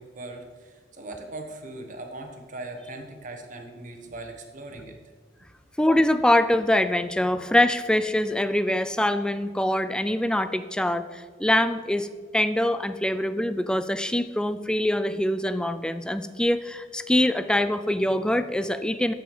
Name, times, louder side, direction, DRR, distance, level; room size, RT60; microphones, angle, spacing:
voice 1, 0.0-5.0, right 2 dB, 45° right, 4 dB, 1.2 m, -40 dB
voice 2, 5.8-12.1 12.3-19.1, left 1 dB, 5° left, 11 dB, 0.3 m, -24 dB
7.1 x 6.3 x 6.6 m, 1.5 s
head